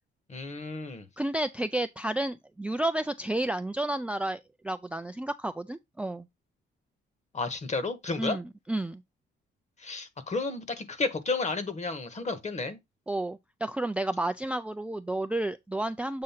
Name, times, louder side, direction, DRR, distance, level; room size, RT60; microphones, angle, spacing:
voice 1, 0.3-1.1 7.3-8.4 9.8-12.8, left 3 dB, 35° left, 1.4 m, -32 dB
voice 2, 1.2-6.3 8.2-9.0 13.1-16.2, right 1 dB, 5° right, 0.4 m, -31 dB
7.6 x 2.7 x 5.7 m
cardioid pair, 90°, 20 cm